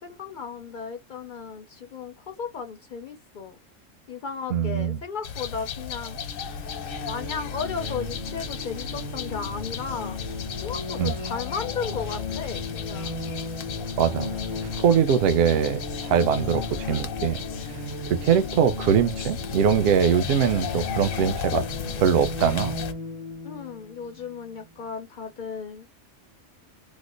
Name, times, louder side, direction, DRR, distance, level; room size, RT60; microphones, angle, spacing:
voice 1, 0.0-3.5 4.1-6.5 7.1-10.2 10.6-13.1 23.4-25.9, left 6 dB, 60° left, 0.5 m, -35 dB
voice 2, 4.5-5.0 11.0-11.2 14.0-14.3 14.8-17.4 18.1-21.6 22.0-22.8, right 8 dB, 60° right, 0.7 m, -22 dB
sound 1, 5.2-22.9, left 7 dB, 90° left, 1.1 m, -35 dB
sound 2, 6.2-24.8, left 2 dB, 45° right, 1.2 m, -36 dB
3.1 x 2.0 x 3.7 m
omnidirectional pair, 1.4 m